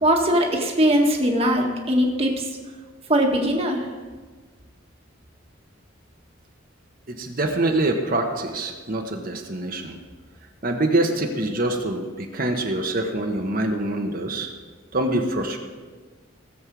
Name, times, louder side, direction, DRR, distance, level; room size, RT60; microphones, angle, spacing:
voice 1, 0.0-2.5 3.1-3.9, equal, 30° right, 1 dB, 1.6 m, -20 dB
voice 2, 7.1-10.0 10.6-14.5 14.9-15.6, right 2 dB, 45° right, 3 dB, 1.2 m, -25 dB
18.0 x 7.6 x 4.8 m, 1.4 s
head